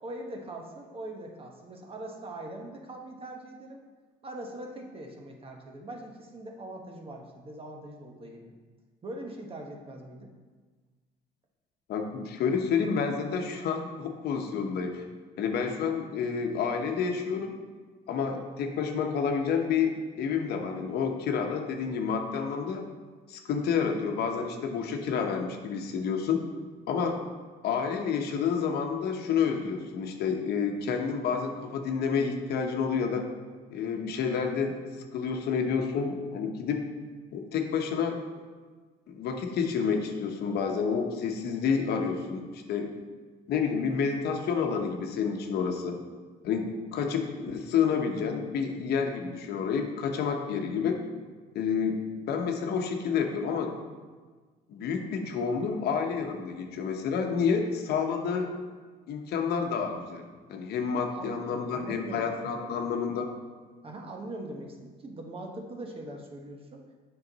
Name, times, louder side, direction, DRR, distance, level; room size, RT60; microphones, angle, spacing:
voice 1, 0.0-3.8 4.2-8.5 9.0-10.3 61.1-62.8 63.8-66.8, right 1 dB, 35° right, 2 dB, 1.1 m, -42 dB
voice 2, 11.9-15.0 15.4-17.6 18.1-22.8 23.3-26.4 26.9-27.2 27.6-33.2 33.7-34.7 35.1-36.8 37.3-38.2 39.1-42.9 43.5-46.0 46.4-51.0 51.5-53.8 54.7-58.5 59.1-63.3, left 6 dB, 70° left, 4 dB, 0.9 m, -29 dB
7.8 x 5.7 x 4.0 m, 1.4 s
cardioid pair, 110°, 17 cm